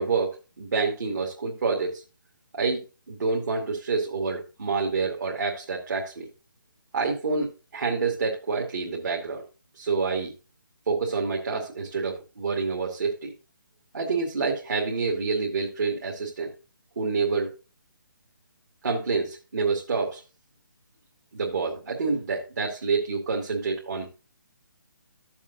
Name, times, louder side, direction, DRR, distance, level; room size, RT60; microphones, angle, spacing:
voice 1, 0.0-2.0 2.5-2.8 3.1-6.3 6.9-9.4 9.7-10.3 10.9-13.3 13.9-16.5 17.0-17.5 18.8-20.2 21.3-24.1, right 4 dB, 60° right, -1 dB, 2.2 m, -27 dB
13.5 x 7.2 x 2.7 m, 0.31 s
figure-of-eight pair, 145°, 11 cm